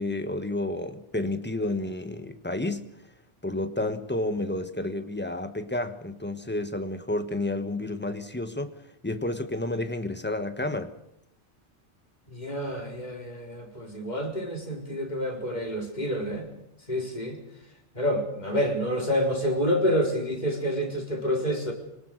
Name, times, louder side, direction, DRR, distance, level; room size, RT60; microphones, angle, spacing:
voice 1, 0.0-2.9 3.4-8.7 9.0-10.9, left 2 dB, 10° left, 1.4 m, -30 dB
voice 2, 12.3-16.5 16.9-17.4 17.9-21.7, equal, 40° left, 4.4 m, -28 dB
25.5 x 18.5 x 6.6 m
omnidirectional pair, 1.2 m